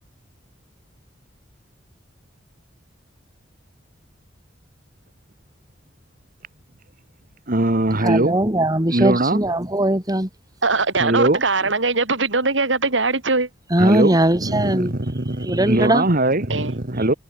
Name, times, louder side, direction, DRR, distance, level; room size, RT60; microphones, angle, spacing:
voice 1, 7.5-8.4 8.9-9.4 11.0-11.7 13.8-17.1, right 1 dB, 50° right, 2.2 m, -21 dB
voice 2, 8.0-10.3 13.7-14.9 15.4-16.1, right 1 dB, 20° right, 3.4 m, -19 dB
voice 3, 10.6-13.5 16.5-16.7, right 3 dB, 80° right, 3.7 m, -21 dB
head